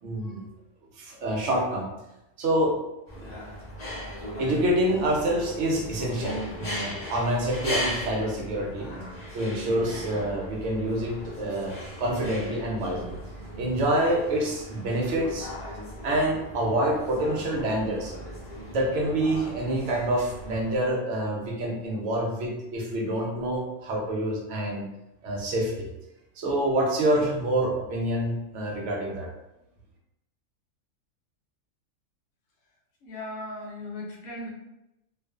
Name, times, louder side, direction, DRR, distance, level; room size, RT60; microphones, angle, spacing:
voice 1, 0.0-0.4 1.0-1.9 2.4-2.8 3.1-3.3 4.4-8.9 9.3-13.1 13.6-15.5 16.0-18.1 18.7-24.8 25.2-25.9 26.4-29.3, right 1 dB, 65° right, -1 dB, 0.8 m, -27 dB
sound 1, 3.1-20.7, equal, 40° left, 0.6 m, -38 dB
voice 2, 33.0-34.5, left 1 dB, 65° left, -1 dB, 1.0 m, -37 dB
2.4 x 2.3 x 2.2 m, 0.90 s
omnidirectional pair, 1.6 m